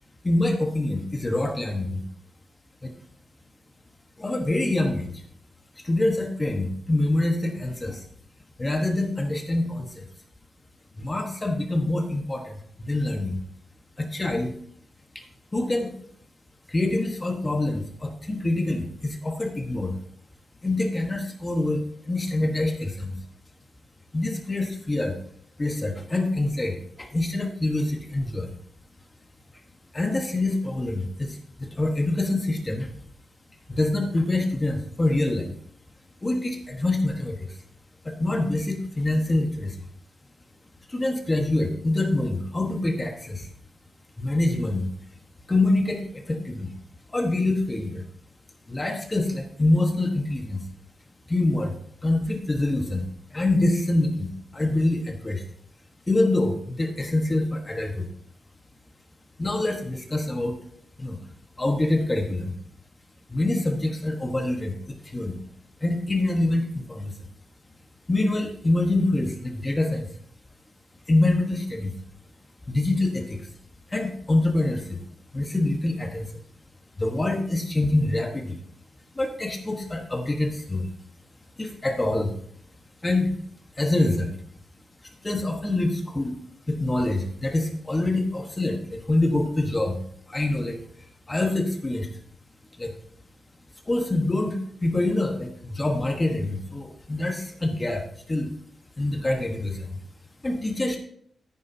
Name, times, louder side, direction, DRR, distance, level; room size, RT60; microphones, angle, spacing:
voice 1, 0.2-2.0 2.8-2.9 4.2-5.2 5.8-8.1 8.6-10.0 11.0-13.4 14.0-14.5 15.1-15.2 15.5-15.9 16.7-20.0 20.6-23.2 24.1-25.2 25.6-28.5 29.9-32.9 33.7-35.5 36.2-37.6 38.0-39.9 40.9-43.5 44.2-44.9 45.5-46.7 47.1-48.0 48.7-50.6 51.3-51.7 52.0-55.4 56.1-58.1 59.4-60.6 61.0-61.2 61.6-62.5 63.3-64.8 65.0-65.4 65.8-67.1 68.1-70.1 71.1-72.0 72.7-73.5 73.9-75.0 75.3-76.3 77.0-78.6 79.1-80.9 81.6-82.3 83.0-83.4 83.8-84.4 85.2-86.4 86.7-90.0 90.3-90.8 91.3-92.1 92.8-92.9 93.8-98.5 99.0-100.0 100.4-101.0, left 2 dB, 20° left, 3 dB, 1.2 m, -25 dB
14.0 x 9.6 x 2.7 m, 0.65 s
wide cardioid pair, 120°, 0 cm